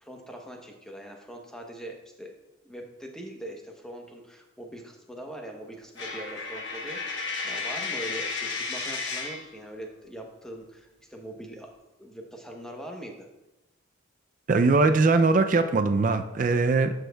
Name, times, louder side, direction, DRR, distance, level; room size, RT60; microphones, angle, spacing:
voice 1, 0.0-2.3 2.6-11.7 12.0-13.3, right 1 dB, 5° left, 1 dB, 0.8 m, -42 dB
Coin (dropping), 6.0-9.5, left 4 dB, 60° left, 1.2 m, -33 dB
voice 2, 14.5-16.9, right 3 dB, 40° right, 8 dB, 0.3 m, -21 dB
11.5 x 6.2 x 2.3 m, 0.97 s
head